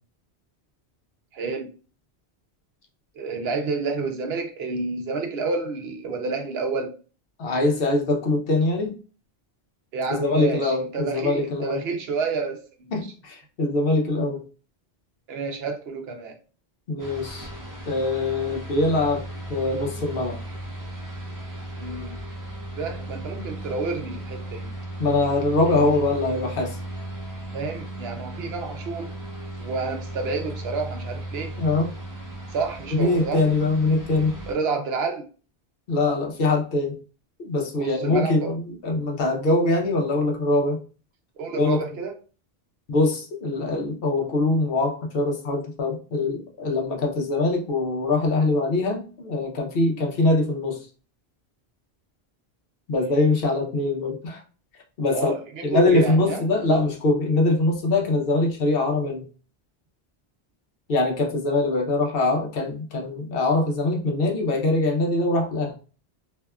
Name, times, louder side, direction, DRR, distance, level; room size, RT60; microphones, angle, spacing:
voice 1, 1.3-1.7 3.1-6.9 9.9-12.9 15.3-16.3 21.8-22.2 22.8-24.7 25.7-26.0 27.5-29.1 29.6-31.5 32.5-33.4 34.5-35.2 37.8-38.5 41.4-42.1 55.1-56.4, right 4 dB, 75° right, 4 dB, 0.8 m, -29 dB
voice 2, 7.4-8.9 10.1-11.8 12.9-14.4 16.9-17.5 17.8-19.2 19.5-20.4 25.0-26.8 31.6-31.9 32.9-34.3 35.9-37.0 37.4-40.8 41.5-41.8 42.9-50.8 52.9-54.4 55.0-55.3 55.6-59.3 60.9-65.8, left 2 dB, 65° left, 1 dB, 0.8 m, -23 dB
sound 1, 17.0-34.5, right 1 dB, 25° right, 0.6 m, -36 dB
2.7 x 2.3 x 2.2 m, 0.36 s
omnidirectional pair, 1.1 m